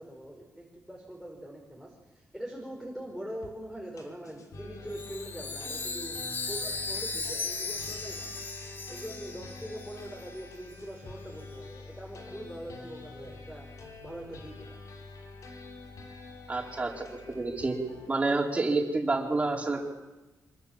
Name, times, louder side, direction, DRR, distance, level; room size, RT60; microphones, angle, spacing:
voice 1, 0.0-6.2 6.5-8.4 8.9-14.8, equal, ahead, 0 dB, 5.4 m, -43 dB
sound 1, 3.4-3.5 4.0-18.1, left 3 dB, 60° left, 5.3 m, -47 dB
Chime, 4.9-10.4, left 3 dB, 35° left, 3.1 m, -37 dB
voice 2, 16.5-17.7 18.1-19.9, right 3 dB, 20° right, -1 dB, 4.9 m, -29 dB
26.0 x 24.5 x 7.5 m, 1.1 s
cardioid pair, 130°, 6 cm